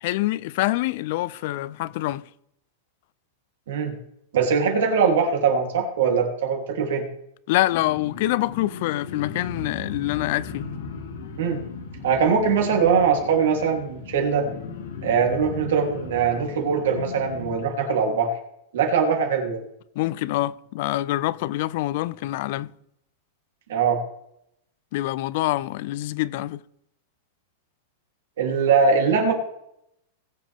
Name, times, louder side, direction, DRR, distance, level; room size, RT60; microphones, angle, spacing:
voice 1, 0.0-2.2 7.5-10.7 20.0-22.7 24.9-26.6, left 16 dB, 55° left, 0.4 m, -25 dB
voice 2, 4.3-7.0 11.4-11.6 12.0-14.5 15.0-18.3 18.7-19.6 23.7-24.0 28.4-29.3, right 6 dB, 80° right, 3.2 m, -21 dB
sound 1, 7.7-17.6, left 4 dB, 85° left, 3.0 m, -37 dB
20.0 x 7.6 x 3.6 m
supercardioid pair, 155°, 0 cm